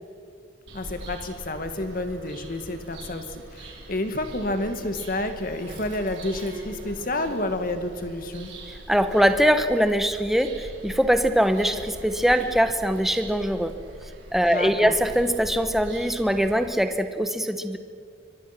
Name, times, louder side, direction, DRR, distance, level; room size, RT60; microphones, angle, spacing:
voice 1, 0.7-8.5 14.5-14.9, left 1 dB, 50° left, 7 dB, 2.0 m, -30 dB
Bird vocalization bird call bird song, 0.7-16.7, right 1 dB, 85° right, 5.0 m, -42 dB
voice 2, 8.9-13.7 14.3-17.8, equal, ahead, 8 dB, 1.1 m, -22 dB
24.5 x 24.0 x 6.0 m, 2.2 s
head